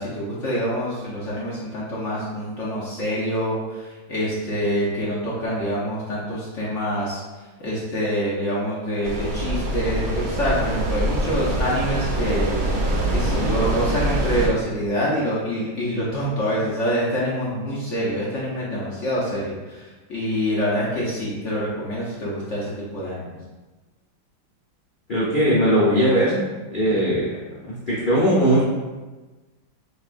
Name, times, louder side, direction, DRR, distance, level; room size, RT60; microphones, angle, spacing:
voice 1, 0.0-7.2 7.6-12.5 13.1-23.3 26.9-27.1, equal, 55° left, -6 dB, 0.8 m, -26 dB
sound 1, 9.0-14.5, right 1 dB, 65° right, 0.9 m, -24 dB
voice 2, 25.1-26.4 26.7-27.3 27.6-28.6, equal, 90° left, -8 dB, 0.4 m, -19 dB
6.7 x 2.3 x 2.5 m, 1.2 s
omnidirectional pair, 2.1 m